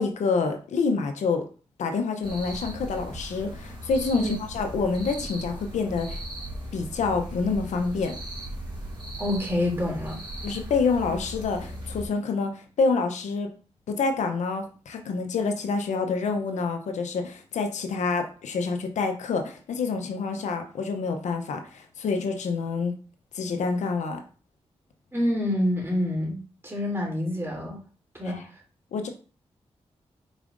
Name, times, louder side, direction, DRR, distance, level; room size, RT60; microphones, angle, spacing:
voice 1, 0.0-1.4 1.8-6.2 6.7-8.2 10.4-13.5 13.9-22.9 23.3-24.2 28.2-28.4 28.9-29.1, left 4 dB, 85° left, 5 dB, 0.6 m, -27 dB
sound 1, 2.2-12.1, right 1 dB, 45° right, 2.0 m, -38 dB
voice 2, 9.2-10.2 25.1-27.8 28.1-28.4, left 1 dB, 20° right, -2 dB, 2.6 m, -27 dB
5.0 x 4.0 x 2.5 m, 0.38 s
cardioid pair, 45°, 12 cm